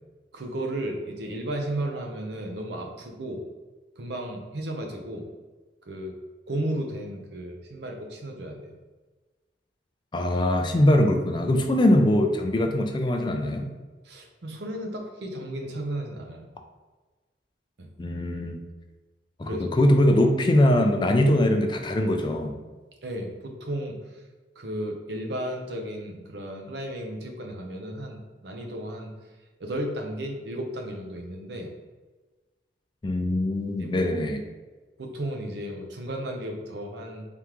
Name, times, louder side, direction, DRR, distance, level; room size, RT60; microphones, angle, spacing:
voice 1, 0.3-3.4 4.0-5.3 5.8-6.1 6.5-8.7 14.0-16.5 17.8-17.9 19.4-19.7 23.0-24.0 24.6-29.1 29.6-31.7 33.8-34.3 35.0-37.3, right 1 dB, 65° right, 2 dB, 0.6 m, -34 dB
voice 2, 10.1-13.7 18.0-18.6 19.4-22.6 33.0-34.4, left 1 dB, 25° left, 4 dB, 0.3 m, -22 dB
3.6 x 3.4 x 3.0 m, 1.3 s
head